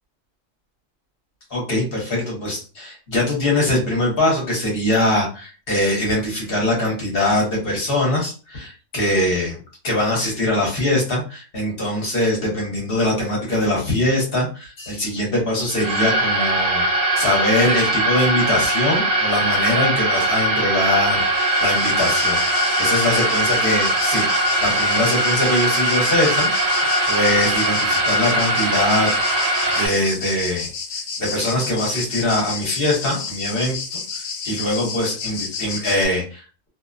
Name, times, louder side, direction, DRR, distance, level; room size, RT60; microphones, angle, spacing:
voice 1, 1.5-9.6 9.8-26.5 27.1-29.1 29.7-30.7 31.2-34.0 34.4-36.4, left 1 dB, 45° left, -2 dB, 1.0 m, -22 dB
sound 1, 15.7-29.9, right 1 dB, 70° right, 1.1 m, -20 dB
sound 2, 21.0-36.1, left 5 dB, 90° left, 1.1 m, -31 dB
2.6 x 2.1 x 2.4 m, 0.36 s
omnidirectional pair, 1.5 m